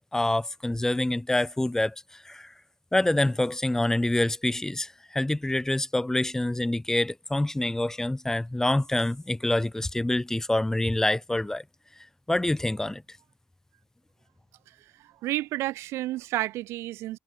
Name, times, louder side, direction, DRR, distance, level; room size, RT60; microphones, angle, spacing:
voice 1, 0.1-2.5 2.9-11.6 12.3-13.0, left 1 dB, 10° left, 1.7 m, -26 dB
voice 2, 15.0-17.2, right 16 dB, 60° right, 3.7 m, -31 dB
figure-of-eight pair, 45°, 5 cm